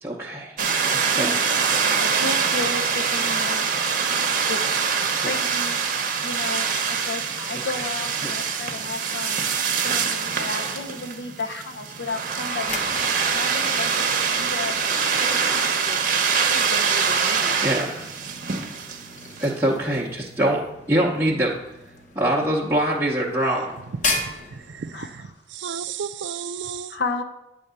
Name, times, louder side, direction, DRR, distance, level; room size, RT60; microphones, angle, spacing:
voice 1, 0.0-0.5 0.9-1.5 5.0-5.4 7.5-7.9 8.2-8.6 17.6-18.1 19.4-21.6 22.1-23.8, right 1 dB, 15° right, -6 dB, 0.7 m, -24 dB
sound 1, 0.6-19.5, right 6 dB, 50° right, 0.8 m, -24 dB
voice 2, 1.7-3.7 4.5-4.6 5.1-5.8 6.2-9.5 9.8-14.1 14.4-16.0 16.3-17.7 24.9-25.3 26.9-27.2, left 3 dB, 75° left, 4 dB, 0.8 m, -33 dB
sound 2, 12.3-25.3, left 2 dB, 45° left, 1.0 m, -37 dB
voice 3, 24.3-27.0, right 7 dB, 90° right, 13 dB, 0.4 m, -33 dB
8.7 x 3.6 x 6.8 m, 0.92 s
head